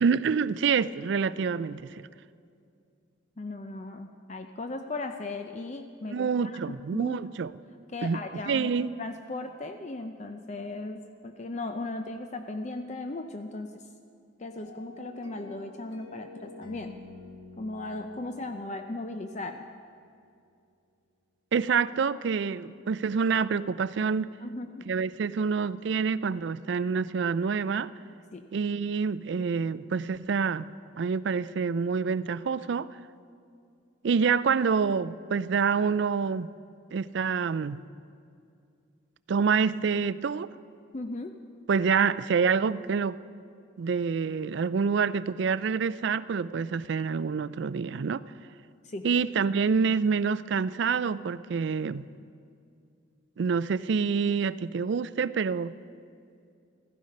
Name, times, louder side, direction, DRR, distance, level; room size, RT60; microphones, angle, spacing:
voice 1, 0.0-2.1 6.1-7.5 8.0-8.2 8.5-8.9 21.5-24.3 24.9-27.9 28.5-30.7 31.0-32.9 34.0-36.5 36.9-37.8 39.3-40.5 41.7-43.2 43.8-48.2 49.0-52.1 53.4-55.7, right 5 dB, 60° right, 17 dB, 0.4 m, -27 dB
voice 2, 3.4-7.2 7.9-13.8 14.4-17.0 17.6-19.7 24.4-24.9 28.3-28.5 40.9-41.4 48.8-49.1, left 2 dB, 35° left, 6 dB, 0.5 m, -37 dB
sound 1, 14.6-19.7, left 2 dB, 75° left, 1.4 m, -49 dB
15.5 x 15.0 x 5.3 m, 2.4 s
head